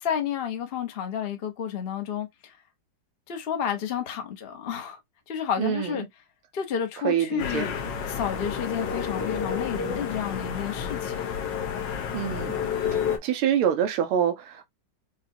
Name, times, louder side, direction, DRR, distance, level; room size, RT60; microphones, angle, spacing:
voice 1, 0.0-2.6 3.3-5.0 5.3-6.0 6.5-7.7 8.1-11.3, left 8 dB, 45° left, 0.7 m, -31 dB
voice 2, 5.6-6.0 7.0-7.7 12.1-12.5 12.9-14.6, right 9 dB, 85° right, 1.7 m, -26 dB
sound 1, 7.4-13.2, left 7 dB, 65° left, 1.4 m, -30 dB
5.5 x 2.3 x 2.6 m
omnidirectional pair, 2.3 m